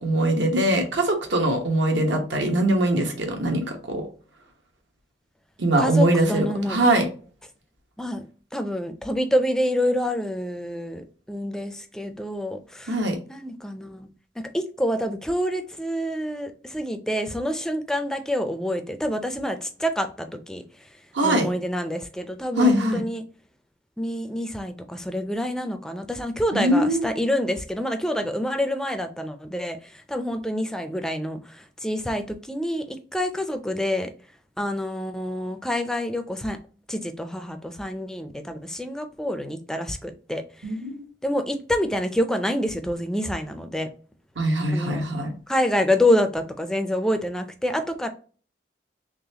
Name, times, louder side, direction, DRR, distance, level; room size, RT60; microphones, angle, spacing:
voice 1, 0.0-4.1 5.6-7.1 12.9-13.1 21.1-21.5 22.6-23.1 26.5-27.1 40.6-41.0 44.4-45.3, right 1 dB, 80° right, 1.1 m, -22 dB
voice 2, 5.8-6.8 8.0-8.2 8.5-12.9 13.3-14.1 14.4-20.6 21.2-23.2 24.0-29.8 30.1-34.1 34.6-36.6 36.9-40.4 41.2-43.9 44.7-45.1 45.5-48.1, left 1 dB, 5° left, 0.4 m, -27 dB
3.9 x 3.2 x 2.8 m
head